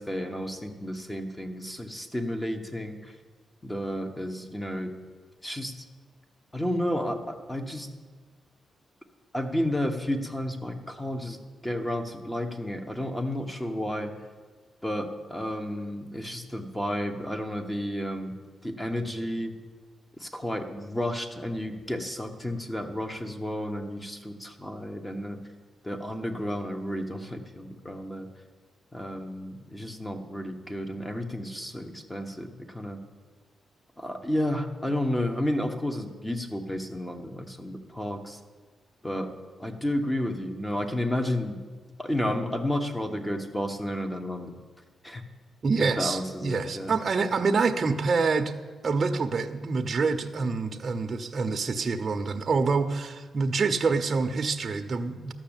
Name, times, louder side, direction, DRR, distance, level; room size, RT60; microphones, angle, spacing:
voice 1, 0.0-3.1 3.6-4.9 5.4-5.8 6.5-7.9 9.3-14.1 14.8-18.3 18.6-19.5 20.2-25.4 25.8-28.3 28.9-33.0 34.0-38.4 39.0-39.3 39.6-41.6 42.0-44.5 45.0-45.2 45.8-47.0, left 1 dB, 10° left, 6 dB, 1.2 m, -31 dB
voice 2, 45.6-48.5 48.8-55.3, right 4 dB, 40° right, 6 dB, 0.7 m, -26 dB
13.0 x 6.2 x 8.9 m, 1.4 s
cardioid pair, 105°, 0 cm